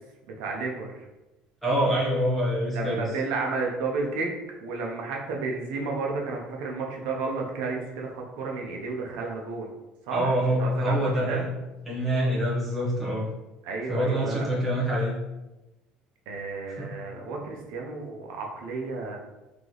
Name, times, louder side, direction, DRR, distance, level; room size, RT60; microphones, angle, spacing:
voice 1, 0.3-0.9 2.7-4.3 4.6-9.7 10.1-11.5 13.6-14.5 16.3-19.2, right 3 dB, 75° right, 0 dB, 0.7 m, -32 dB
voice 2, 1.6-3.1 10.1-11.4 11.9-13.3 13.9-15.1 16.8-16.9, equal, ahead, -8 dB, 1.0 m, -25 dB
3.2 x 2.9 x 3.9 m, 1.0 s
cardioid pair, 175°, 3 cm